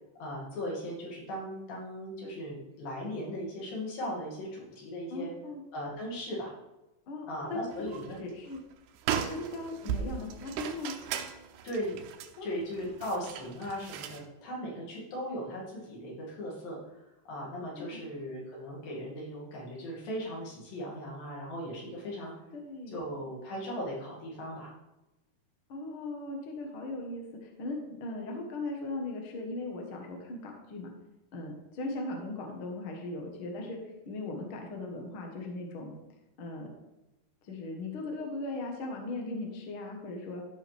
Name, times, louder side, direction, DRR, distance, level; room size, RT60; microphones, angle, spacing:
voice 1, 0.2-5.3 5.7-6.5 7.3-8.2 11.6-12.0 12.4-17.0 17.3-22.3 22.9-24.7, equal, 60° left, -4 dB, 4.1 m, -38 dB
voice 2, 5.1-5.6 7.1-8.6 9.2-10.9 12.4-12.5 17.9-18.0 22.5-23.0 25.7-30.9 31.3-33.8 34.0-35.9 36.4-36.7 37.4-40.4, left 2 dB, 85° left, 1 dB, 1.1 m, -38 dB
sound 1, 7.7-8.2 8.5-8.6 9.0-14.2, right 8 dB, 85° right, 2.9 m, -37 dB
13.5 x 5.7 x 3.5 m, 0.98 s
omnidirectional pair, 4.9 m